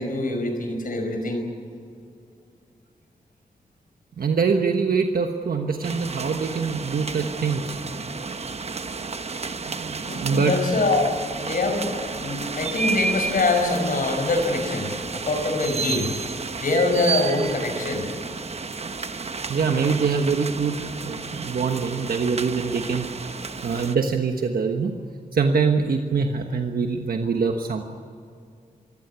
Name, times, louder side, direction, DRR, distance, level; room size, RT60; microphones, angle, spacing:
voice 1, 0.0-1.5 10.0-16.2 16.6-18.1, left 2 dB, 70° left, 4 dB, 5.3 m, -24 dB
voice 2, 4.2-7.8 9.6-10.5 19.5-23.1 23.6-25.0 25.3-27.8, right 5 dB, 90° right, 4 dB, 1.3 m, -24 dB
sound 1, 5.8-23.9, right 4 dB, 45° right, 1.0 m, -32 dB
24.0 x 16.0 x 9.6 m, 2.4 s
wide cardioid pair, 115°, 15 cm